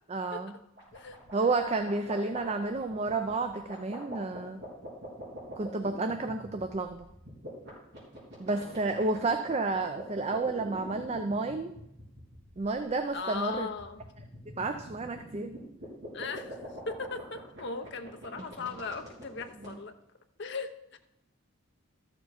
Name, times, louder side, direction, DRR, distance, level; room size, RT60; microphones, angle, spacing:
voice 1, 0.1-0.5 1.3-4.6 5.6-7.0 8.4-11.7 12.6-13.7 14.5-15.5, right 3 dB, 30° right, 7 dB, 0.4 m, -31 dB
sound 1, 0.8-19.7, equal, 50° right, 4.3 m, -45 dB
voice 2, 2.0-2.4 5.6-5.9 8.5-8.9 13.1-14.2 16.1-16.6 16.9-20.0 20.4-21.0, left 4 dB, 55° left, 7 dB, 0.8 m, -39 dB
13.0 x 7.0 x 4.3 m, 0.84 s
head